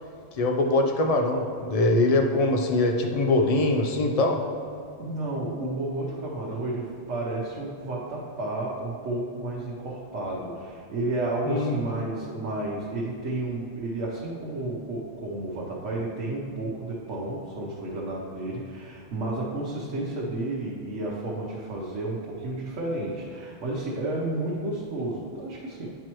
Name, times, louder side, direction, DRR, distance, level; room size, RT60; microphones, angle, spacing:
voice 1, 0.4-4.4 11.5-11.8, left 2 dB, 45° left, 2 dB, 0.5 m, -23 dB
voice 2, 5.0-25.9, right 2 dB, 85° right, -5 dB, 1.2 m, -31 dB
9.3 x 4.5 x 3.0 m, 2.5 s
omnidirectional pair, 1.2 m